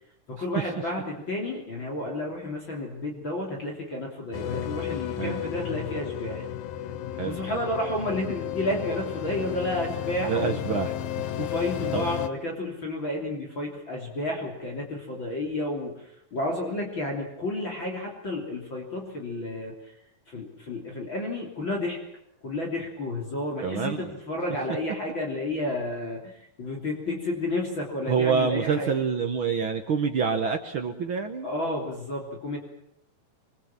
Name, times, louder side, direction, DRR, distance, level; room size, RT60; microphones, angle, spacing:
voice 1, 0.3-6.5 7.2-10.6 11.4-19.9 20.3-22.0 22.4-28.9 31.4-32.6, left 1 dB, 35° left, -1 dB, 3.7 m, -31 dB
sound 1, 4.3-12.3, left 11 dB, 75° left, 2.8 m, -33 dB
voice 2, 10.2-11.3 11.9-12.0 23.6-24.1 28.1-31.5, right 6 dB, 70° right, 5 dB, 1.2 m, -27 dB
25.5 x 22.0 x 7.4 m, 0.77 s
omnidirectional pair, 4.2 m